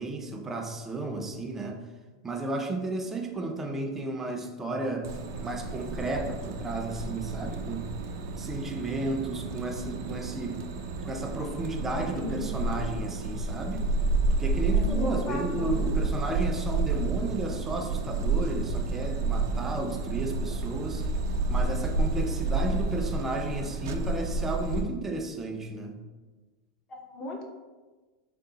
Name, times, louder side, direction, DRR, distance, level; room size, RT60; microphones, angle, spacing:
voice 1, 0.0-1.8 2.2-5.1 5.4-7.9 8.4-10.6 11.0-13.9 14.4-21.0 21.5-26.0, right 2 dB, 15° right, 3 dB, 0.5 m, -33 dB
sound 1, 5.0-24.8, right 3 dB, 80° right, 0.4 m, -30 dB
voice 2, 12.1-12.5 14.7-15.9 26.9-27.4, left 2 dB, 35° left, 1 dB, 0.7 m, -36 dB
3.8 x 2.0 x 3.9 m, 1.3 s
supercardioid pair, 130°, 2 cm